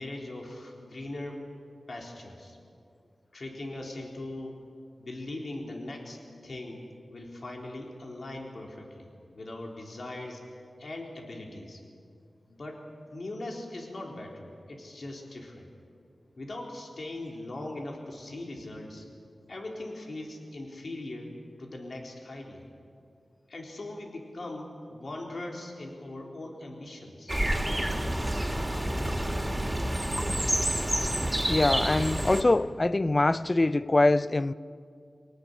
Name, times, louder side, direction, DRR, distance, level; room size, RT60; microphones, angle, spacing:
voice 1, 0.0-1.4 1.9-2.6 3.3-4.6 5.0-10.4 10.8-11.8 12.5-12.8 13.1-15.7 16.4-19.1 19.5-21.3 21.6-22.6 23.5-27.4, left 2 dB, 65° left, 4.0 m, -40 dB
sound 1, 27.3-32.4, right 1 dB, 15° right, 3.2 m, -28 dB
voice 2, 31.5-34.5, left 2 dB, 40° left, 0.6 m, -24 dB
25.5 x 18.5 x 9.9 m
cardioid pair, 55°, 0 cm